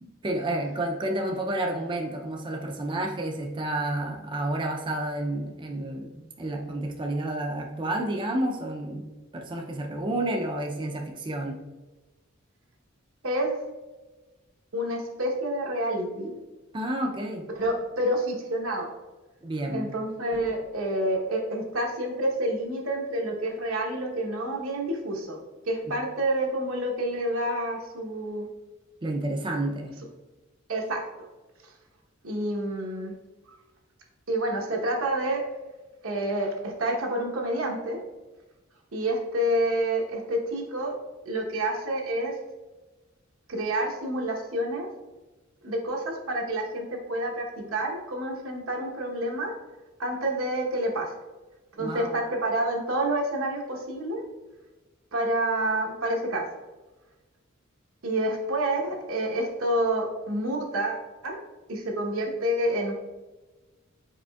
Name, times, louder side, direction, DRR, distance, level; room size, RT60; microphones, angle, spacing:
voice 1, 0.0-11.6 16.7-17.5 19.4-19.9 29.0-30.0 51.8-52.2, right 1 dB, 25° right, 1 dB, 0.4 m, -30 dB
voice 2, 14.7-16.4 17.6-18.9 19.7-25.4 25.6-28.5 30.7-31.0 31.6-31.7 32.2-33.1 34.3-35.4 36.0-38.0 38.9-40.9 41.2-42.3 43.5-44.9 45.6-49.5 50.0-51.2 51.8-54.2 55.1-56.5 58.0-61.4 61.7-62.9, right 1 dB, 80° right, 0 dB, 1.0 m, -28 dB
5.0 x 4.3 x 2.3 m, 1.2 s
head